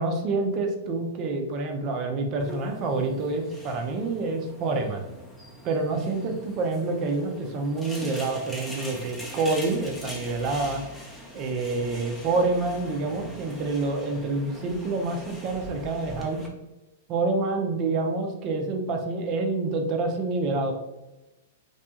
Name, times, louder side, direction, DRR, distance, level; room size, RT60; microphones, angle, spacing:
voice 1, 0.0-5.1 5.6-10.8 11.3-16.4 17.1-20.7, right 3 dB, 40° right, 3 dB, 0.5 m, -27 dB
sound 1, 2.4-16.5, left 1 dB, 5° left, 0.6 m, -42 dB
2.7 x 2.2 x 2.7 m, 0.99 s
hypercardioid pair, 110°, 0 cm